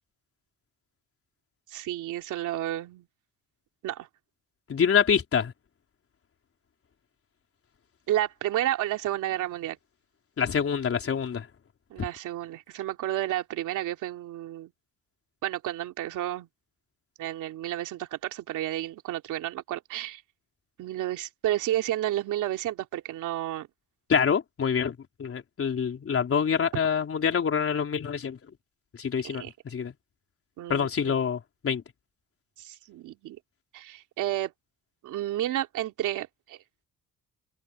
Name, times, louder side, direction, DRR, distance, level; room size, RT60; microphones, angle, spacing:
voice 1, 1.7-3.1 3.8-4.1 8.1-9.8 11.9-14.7 15.4-16.5 17.2-20.2 20.8-23.7 29.2-29.5 30.6-31.1 32.6-33.4 33.7-34.5 35.0-36.6, right 13 dB, 85° right, 2.9 m, -31 dB
voice 2, 4.7-5.5 10.4-11.5 24.1-28.4 29.0-29.4 29.7-29.9 30.7-31.8, left 7 dB, 45° left, 4.3 m, -26 dB
cardioid pair, 90°, 30 cm